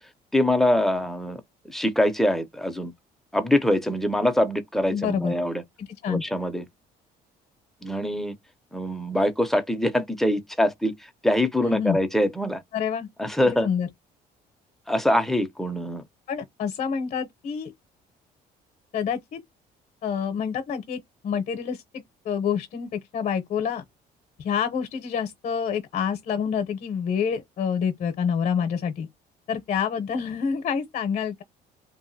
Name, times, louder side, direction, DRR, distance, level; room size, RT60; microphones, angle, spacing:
voice 1, 0.3-1.4 1.7-2.9 3.3-5.6 6.1-6.6 7.8-8.4 8.7-10.9 11.2-12.6 13.2-13.7 14.9-16.0, left 1 dB, ahead, 0.6 m, -24 dB
voice 2, 4.9-5.3 5.8-6.2 11.6-12.0 12.7-13.1 13.4-13.9 16.3-17.7 18.9-19.4 20.0-23.8 24.4-29.1 29.5-31.4, left 7 dB, 50° left, 0.7 m, -27 dB
2.8 x 2.5 x 2.6 m
cardioid pair, 110°, 17 cm